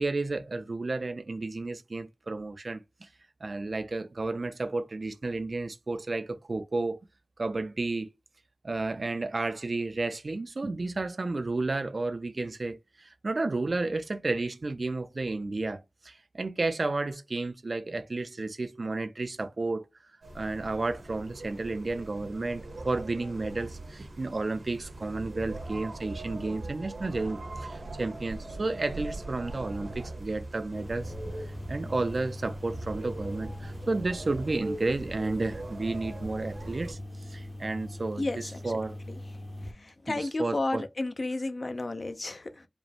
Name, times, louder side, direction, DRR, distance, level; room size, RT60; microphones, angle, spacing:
voice 1, 0.0-3.1 3.4-7.0 7.4-8.1 8.6-19.9 20.3-31.1 31.4-37.0 37.3-39.0 40.1-40.8, right 3 dB, 60° right, 0.4 m, -32 dB
sound 1, 20.2-36.9, right 2 dB, 90° right, 1.3 m, -41 dB
sound 2, 30.7-39.7, left 1 dB, 15° left, 0.6 m, -42 dB
voice 2, 38.2-38.7 39.1-39.2 39.6-42.7, left 2 dB, 55° left, 0.5 m, -33 dB
5.0 x 2.1 x 3.3 m
wide cardioid pair, 75°, 0 cm